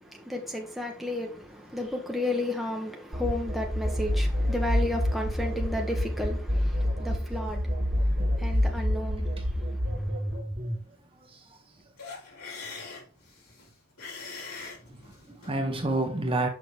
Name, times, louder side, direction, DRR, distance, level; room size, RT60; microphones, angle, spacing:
voice 1, 0.0-10.4, left 1 dB, ahead, 1.0 m, -33 dB
sound 1, 3.1-10.7, equal, 45° right, 2.2 m, -28 dB
sound 2, 12.0-15.6, left 4 dB, 80° left, 3.6 m, -42 dB
voice 2, 14.9-16.5, right 2 dB, 25° right, 0.9 m, -30 dB
6.2 x 5.6 x 3.3 m
head